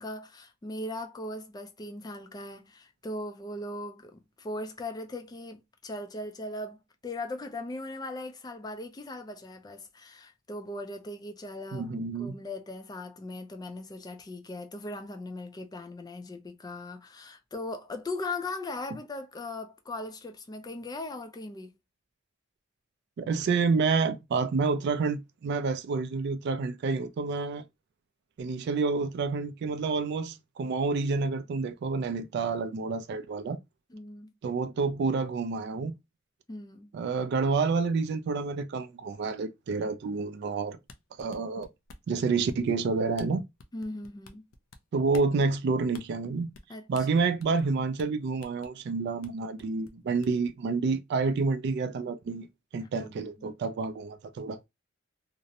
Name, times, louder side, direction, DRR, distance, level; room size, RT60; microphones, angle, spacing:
voice 1, 0.0-6.8 7.0-11.9 12.2-21.7 33.9-34.3 36.5-36.9 43.7-44.5 46.7-47.1 52.8-53.1 53.4-53.6, left 2 dB, 20° left, 0.4 m, -39 dB
voice 2, 11.7-12.3 23.2-27.6 28.4-33.6 34.4-35.9 36.9-40.8 41.2-41.7 42.1-43.4 44.9-46.5 46.9-52.5 52.7-54.6, right 4 dB, 55° right, 0.3 m, -29 dB
sound 1, 40.9-42.1 42.5-42.8 43.1-43.3 43.6-44.8 45.1-45.3 45.9-46.0 46.5-46.7 46.9-47.7 48.0-48.1 48.4-48.7 49.2-49.3 49.6-50.5, left 3 dB, 80° left, 0.4 m, -50 dB
2.5 x 2.0 x 2.6 m
head